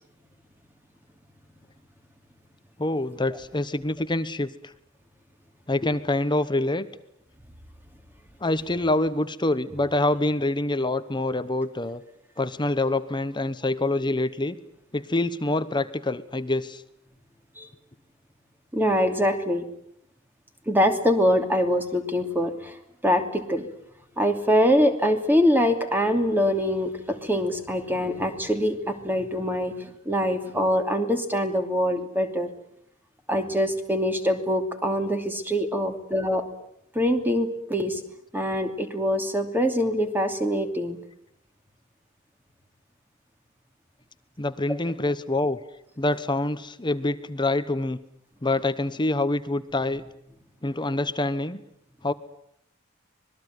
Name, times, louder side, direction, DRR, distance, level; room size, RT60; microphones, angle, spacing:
voice 1, 2.8-4.5 5.7-6.9 8.4-12.0 12.4-14.6 14.9-16.8 44.4-45.6 46.0-48.0 48.4-50.0 50.6-51.6 52.0-52.1, left 2 dB, 20° left, 12 dB, 1.1 m, -26 dB
voice 2, 18.7-19.6 20.7-23.7 24.2-32.5 33.3-36.4 36.9-38.0 38.3-41.0, equal, 10° right, 6 dB, 2.8 m, -24 dB
25.5 x 20.5 x 9.5 m, 0.75 s
head